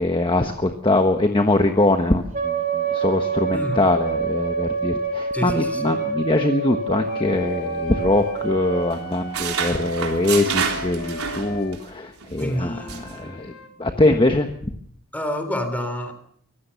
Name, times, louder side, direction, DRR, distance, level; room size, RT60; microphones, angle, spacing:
voice 1, 0.0-13.5 13.8-14.5, left 2 dB, 25° left, 6 dB, 1.2 m, -22 dB
Wind instrument woodwind instrument, 2.3-8.9, right 4 dB, 35° right, 3.5 m, -26 dB
voice 2, 5.3-6.3 12.4-13.0 15.1-16.1, equal, 5° left, 8 dB, 3.5 m, -28 dB
Flute - G major, 7.1-11.8 12.4-13.7, left 1 dB, 85° left, 3.6 m, -37 dB
sound 1, 7.8-8.6 8.9-11.9 12.2-12.4 12.9-13.1, right 6 dB, 75° right, 3.7 m, -29 dB
24.0 x 15.5 x 7.0 m, 0.65 s
head